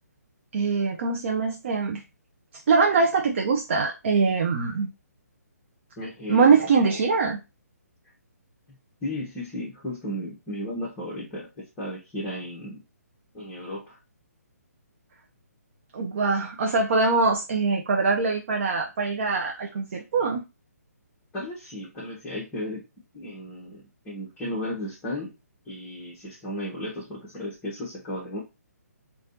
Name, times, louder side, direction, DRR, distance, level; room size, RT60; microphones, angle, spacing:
voice 1, 0.5-2.0 2.7-4.9 6.3-7.4 15.9-20.4, right 4 dB, 45° right, 2 dB, 0.5 m, -23 dB
voice 2, 6.0-6.9 8.0-8.1 9.0-12.8 13.3-14.0 21.3-22.8 23.1-25.3 25.6-28.4, left 1 dB, 15° left, -6 dB, 1.1 m, -34 dB
4.9 x 2.4 x 2.6 m, 0.26 s
figure-of-eight pair, 135°, 9 cm